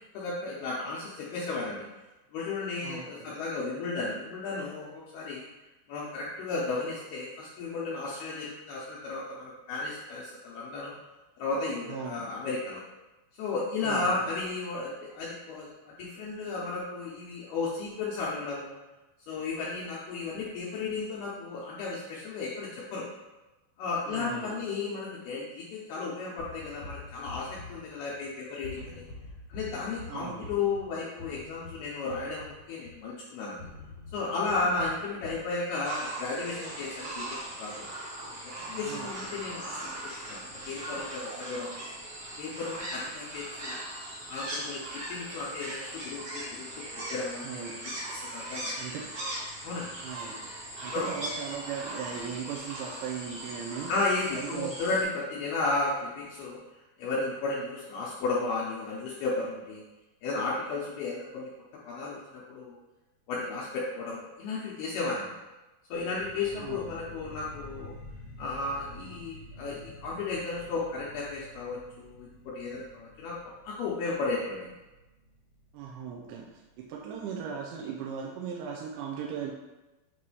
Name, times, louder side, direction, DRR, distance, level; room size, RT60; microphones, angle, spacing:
voice 1, 0.1-1.9 2.3-5.5 5.9-10.9 11.4-12.8 13.4-18.8 19.3-23.1 23.8-29.0 29.5-33.6 34.1-37.8 38.4-39.8 40.3-41.9 42.4-43.8 44.3-46.7 46.9-47.6 48.1-48.7 49.6-49.9 50.9-51.1 53.9-56.6 57.0-59.8 60.2-61.5 61.8-62.8 63.3-65.3 65.9-67.9 68.4-73.4 73.6-74.7, left 3 dB, 90° left, -5 dB, 2.3 m, -34 dB
voice 2, 2.8-3.4 11.9-12.3 13.8-14.2 24.1-24.6 30.1-30.5 38.8-39.4 47.4-47.7 48.7-49.0 50.0-50.3 50.8-53.9 54.3-54.7 66.5-66.8 75.7-79.5, right 7 dB, 85° right, -2 dB, 2.6 m, -38 dB
sound 1, 26.4-28.3 28.6-33.1 33.6-35.5, left 3 dB, 40° left, 1.0 m, -46 dB
sound 2, 35.8-55.0, right 1 dB, 65° right, 1.4 m, -39 dB
sound 3, 65.9-76.9, left 1 dB, 65° left, 1.4 m, -49 dB
8.4 x 3.0 x 4.8 m, 1.1 s
omnidirectional pair, 5.5 m